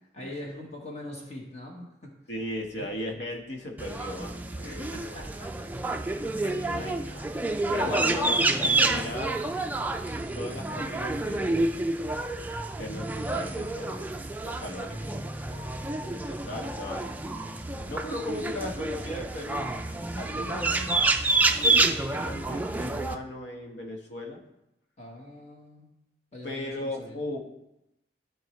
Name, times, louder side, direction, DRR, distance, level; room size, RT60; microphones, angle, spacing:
voice 1, 0.1-2.1 2.8-2.9 4.6-5.5 6.2-6.3 6.7-7.2 7.8-8.2 20.5-21.0 25.0-25.9 26.3-27.2, left 1 dB, 40° left, 0 dB, 1.1 m, -43 dB
voice 2, 2.3-5.5 6.4-9.4 10.3-11.9 12.8-17.0 17.9-19.6 20.1-20.9 21.5-24.4 26.4-27.6, left 1 dB, 75° left, 1 dB, 1.3 m, -37 dB
sound 1, 3.8-23.1, right 2 dB, 10° right, 0.4 m, -29 dB
13.5 x 4.6 x 3.1 m, 0.89 s
head